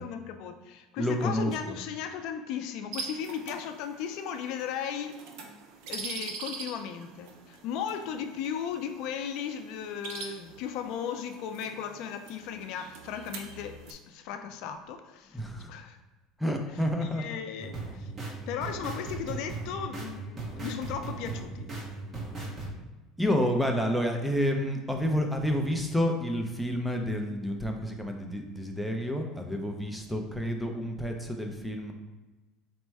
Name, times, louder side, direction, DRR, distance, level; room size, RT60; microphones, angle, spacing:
voice 1, 0.0-5.2 5.9-15.4 15.7-16.0 17.0-18.1 18.5-21.7, left 8 dB, 60° left, 8 dB, 0.4 m, -36 dB
voice 2, 1.0-1.8 15.3-15.7 16.4-17.4 23.2-31.9, equal, ahead, 2 dB, 0.4 m, -29 dB
sound 1, 2.9-13.9, right 4 dB, 70° right, 0.6 m, -44 dB
sound 2, 17.6-22.7, right 3 dB, 25° right, 0.9 m, -38 dB
4.3 x 2.1 x 4.6 m, 1.2 s
cardioid pair, 150°, 0 cm